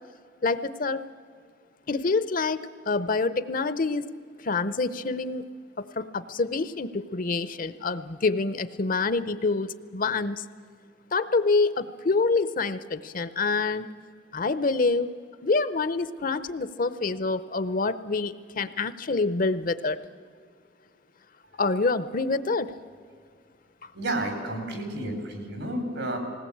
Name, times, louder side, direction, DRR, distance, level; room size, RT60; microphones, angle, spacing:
voice 1, 0.4-1.0 1.9-2.6 2.9-4.1 4.4-5.4 5.8-10.4 11.1-13.9 14.3-15.1 15.4-20.0 21.6-22.7, left 3 dB, 45° left, 14 dB, 0.7 m, -26 dB
voice 2, 23.9-26.2, right 1 dB, 80° right, 5 dB, 4.5 m, -31 dB
20.0 x 18.0 x 8.6 m, 2.1 s
head